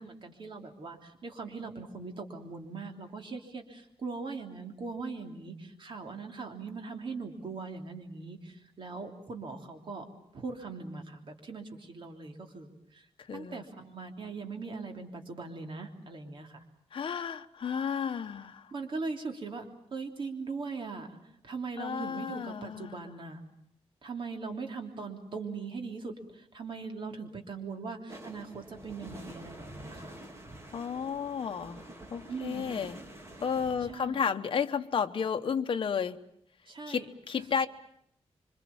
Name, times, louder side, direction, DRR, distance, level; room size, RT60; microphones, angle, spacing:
voice 1, 0.0-10.0 10.3-16.6 18.7-19.6 19.9-23.4 24.0-30.1 32.3-32.8 33.8-34.4 36.6-37.1, right 4 dB, 50° right, 3 dB, 3.3 m, -40 dB
voice 2, 13.3-13.6 16.9-18.7 21.8-23.0 30.7-33.0 33.4-36.2 36.9-37.7, left 6 dB, 50° left, 7 dB, 1.1 m, -32 dB
sound 1, 28.1-33.9, right 1 dB, 25° right, 3.1 m, -47 dB
26.5 x 25.5 x 7.2 m, 0.74 s
wide cardioid pair, 155°, 11 cm